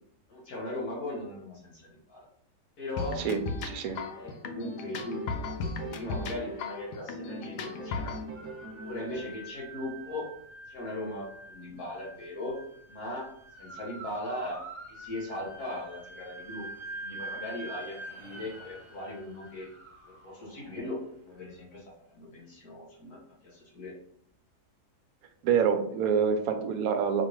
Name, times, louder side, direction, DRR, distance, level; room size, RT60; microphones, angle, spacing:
voice 1, 0.3-2.3 2.8-3.3 4.1-5.5 5.9-8.3 8.8-10.3 10.7-12.6 12.9-13.3 13.6-16.7 17.0-19.7 20.2-21.0 21.2-23.9, left 1 dB, 70° left, -3 dB, 2.0 m, -39 dB
sound 1, 3.0-8.2, left 4 dB, 90° left, 1.2 m, -36 dB
voice 2, 3.2-4.0 25.4-27.3, right 6 dB, 70° right, 7 dB, 1.0 m, -26 dB
sound 2, 4.5-6.8 7.1-9.6, right 2 dB, 50° right, 1.2 m, -43 dB
sound 3, 8.4-21.4, right 2 dB, 30° right, 0.6 m, -46 dB
5.0 x 3.3 x 3.1 m, 0.67 s
omnidirectional pair, 1.7 m